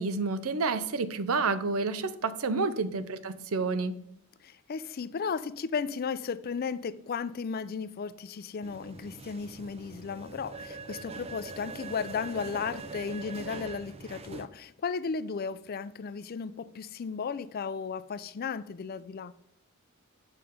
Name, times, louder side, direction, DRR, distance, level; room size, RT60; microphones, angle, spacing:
voice 1, 0.0-4.0, right 4 dB, 80° right, 0.6 m, -29 dB
voice 2, 4.4-19.3, left 5 dB, 45° left, 0.4 m, -35 dB
sound 1, 8.6-14.5, right 3 dB, 30° right, 0.5 m, -43 dB
7.9 x 5.7 x 5.0 m
head